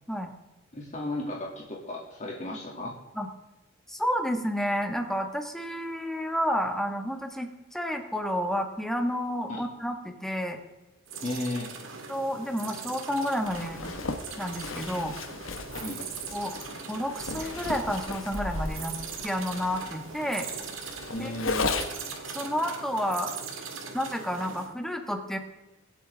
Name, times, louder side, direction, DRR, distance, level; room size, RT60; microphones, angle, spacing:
voice 1, 0.7-2.9 9.5-9.6 11.2-11.7 15.8-16.0 21.1-21.8, left 1 dB, 40° left, -2 dB, 2.3 m, -34 dB
voice 2, 3.9-10.6 12.1-13.9 14.4-15.2 16.3-16.5 16.9-18.9 19.2-20.5 21.2-21.3 22.3-23.3 23.9-25.4, equal, ahead, 4 dB, 1.5 m, -30 dB
sound 1, 11.1-24.7, right 5 dB, 80° right, 1.9 m, -40 dB
Zipper (clothing), 13.4-22.1, left 3 dB, 85° left, 1.3 m, -35 dB
24.0 x 8.4 x 3.5 m, 1.1 s
head